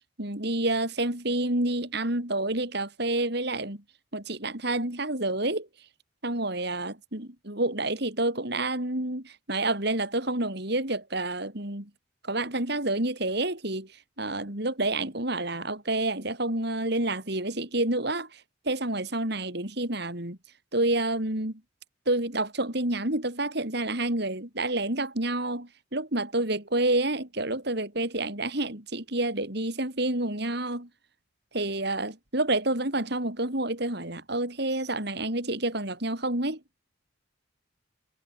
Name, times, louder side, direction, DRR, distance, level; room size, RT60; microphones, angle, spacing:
voice 1, 0.2-3.8 4.1-5.7 6.2-11.9 12.2-20.4 20.7-21.6 22.1-30.9 31.5-36.6, right 2 dB, 55° right, 4.4 m, -29 dB
head